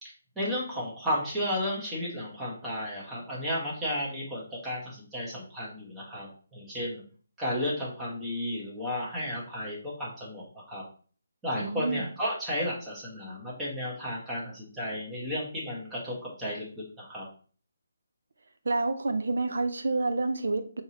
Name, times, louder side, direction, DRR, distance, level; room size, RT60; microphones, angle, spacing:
voice 1, 0.0-7.0 7.4-10.8 11.4-17.3, equal, 10° right, -5 dB, 1.1 m, -33 dB
voice 2, 11.6-12.1 18.6-20.8, right 3 dB, 70° right, 8 dB, 0.6 m, -28 dB
4.7 x 2.9 x 2.9 m, 0.41 s
hypercardioid pair, 165°, 0 cm